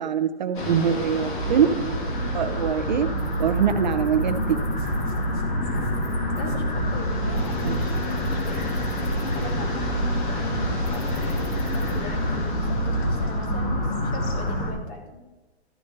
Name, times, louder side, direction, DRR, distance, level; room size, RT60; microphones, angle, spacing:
voice 1, 0.0-1.7 2.3-3.1 3.4-4.6 7.6-7.8, right 8 dB, 40° right, 10 dB, 0.6 m, -23 dB
sound 1, 0.5-14.7, left 2 dB, 45° left, 2.4 m, -27 dB
sound 2, 1.4-14.1, right 4 dB, 60° right, 1.5 m, -32 dB
voice 2, 5.6-5.9 6.4-8.8 9.1-10.5 10.9-15.3, left 2 dB, 20° left, 3 dB, 1.5 m, -40 dB
13.0 x 6.5 x 4.6 m, 1.2 s
hypercardioid pair, 170°, 33 cm